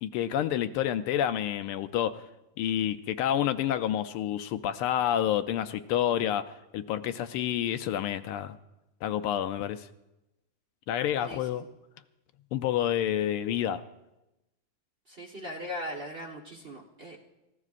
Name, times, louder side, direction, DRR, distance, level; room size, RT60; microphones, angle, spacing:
voice 1, 0.0-2.2 2.6-8.5 9.0-9.9 10.9-11.7 12.5-13.8, left 10 dB, 80° left, 10 dB, 1.5 m, -29 dB
voice 2, 15.1-17.2, left 1 dB, 35° right, -1 dB, 1.2 m, -39 dB
30.0 x 15.0 x 2.5 m, 0.97 s
omnidirectional pair, 2.4 m